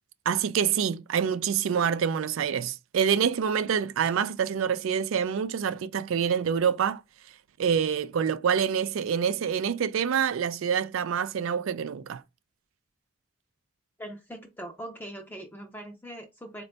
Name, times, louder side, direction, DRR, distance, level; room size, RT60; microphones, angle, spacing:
voice 1, 0.3-7.0 7.6-12.2, right 7 dB, 70° right, 0.3 m, -26 dB
voice 2, 14.0-16.6, right 1 dB, 10° left, 0.4 m, -41 dB
4.2 x 2.2 x 3.8 m
head